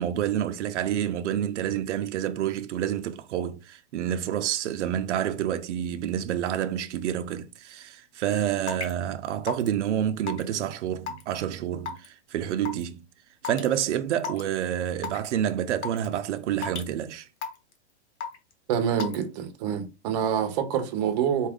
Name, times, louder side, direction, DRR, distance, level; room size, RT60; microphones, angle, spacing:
voice 1, 0.0-13.0 13.4-17.3, right 10 dB, 80° right, 0.5 m, -28 dB
Raindrop / Water tap faucet / Drip, 8.7-8.9 9.5-9.7 10.3-10.5 11.1-11.4 11.9-12.1 12.6-12.8 13.4-13.7 14.2-14.4 15.0-15.3 15.8-16.1 16.6-16.9 17.4-17.7 18.2-18.5 19.0-19.2, left 6 dB, 70° left, 1.1 m, -32 dB
voice 2, 18.7-21.5, right 8 dB, 35° right, 0.6 m, -26 dB
4.2 x 2.4 x 3.5 m
hypercardioid pair, 155°, 35 cm